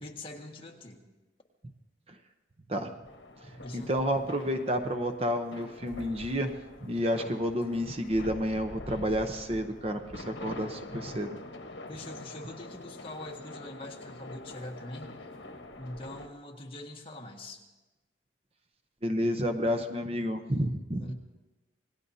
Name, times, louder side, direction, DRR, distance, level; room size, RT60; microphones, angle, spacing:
voice 1, 0.0-1.0 3.6-3.9 11.9-15.1 15.8-17.6 21.0-21.1, left 1 dB, 30° left, 0 dB, 1.7 m, -43 dB
sound 1, 3.1-16.3, left 2 dB, 70° left, 1.4 m, -45 dB
voice 2, 3.7-6.5 6.8-11.4 19.0-21.1, equal, 30° right, 7 dB, 0.8 m, -30 dB
27.0 x 19.5 x 2.8 m, 1.1 s
head